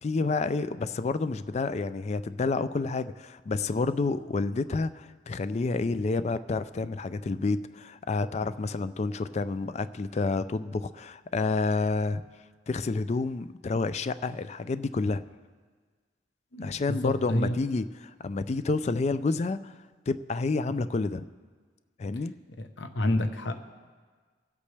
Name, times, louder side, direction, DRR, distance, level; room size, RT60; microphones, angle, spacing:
voice 1, 0.0-12.2 12.7-15.2 16.6-19.7 20.1-21.2 22.0-22.3, left 3 dB, 40° left, 13 dB, 0.4 m, -29 dB
voice 2, 16.5-17.6 22.6-23.6, left 1 dB, 90° left, 7 dB, 0.9 m, -29 dB
24.0 x 8.3 x 3.3 m, 1.5 s
head